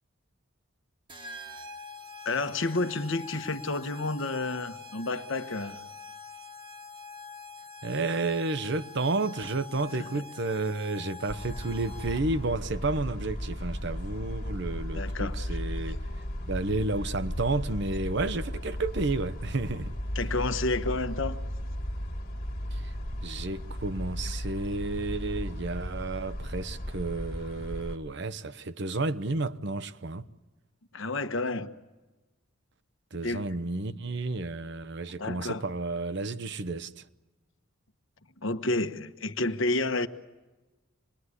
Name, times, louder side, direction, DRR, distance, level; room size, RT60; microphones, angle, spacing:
sound 1, 1.1-12.5, left 4 dB, 25° right, 1.3 m, -45 dB
voice 1, 2.2-5.8 10.0-10.2 14.9-15.6 20.1-21.4 30.9-31.7 33.2-33.4 35.2-35.6 38.4-40.1, left 2 dB, 65° left, 1.3 m, -30 dB
voice 2, 7.8-16.0 16.5-19.9 22.7-22.9 23.2-30.3 33.1-37.0, right 3 dB, 55° right, 0.9 m, -31 dB
sound 2, 11.3-28.0, equal, 45° left, 1.9 m, -35 dB
27.0 x 21.0 x 9.8 m
head